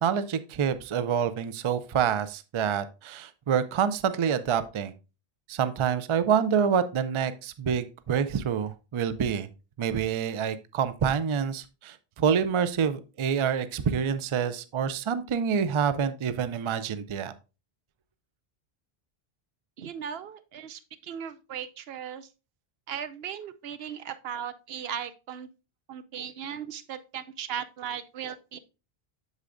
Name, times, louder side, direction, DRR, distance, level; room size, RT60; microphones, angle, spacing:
voice 1, 0.0-4.9 5.5-9.5 9.8-17.3, right 7 dB, 50° right, 13 dB, 0.4 m, -27 dB
voice 2, 19.8-22.3 22.9-25.5 25.9-28.6, right 8 dB, 80° right, 11 dB, 0.8 m, -37 dB
8.1 x 6.9 x 2.5 m, 0.30 s
omnidirectional pair, 1.0 m